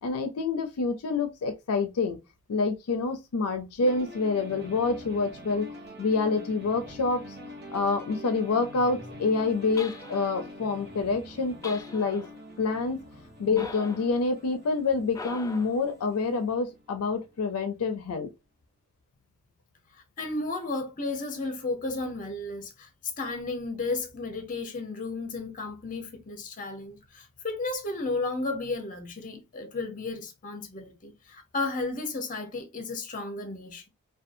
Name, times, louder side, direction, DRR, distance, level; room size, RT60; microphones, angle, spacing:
voice 1, 0.0-2.2 2.5-5.7 6.0-7.4 7.7-12.3 12.6-13.0 13.4-18.3, left 4 dB, 75° left, 0.5 m, -27 dB
sound 1, 3.8-17.5, left 1 dB, 45° right, 0.9 m, -45 dB
sound 2, 9.8-10.5 11.6-12.4 13.6-14.1 15.1-15.8, left 3 dB, 15° left, 0.3 m, -42 dB
voice 2, 20.2-22.9 23.2-33.8, left 3 dB, 40° left, 0.7 m, -33 dB
2.6 x 2.3 x 2.5 m
head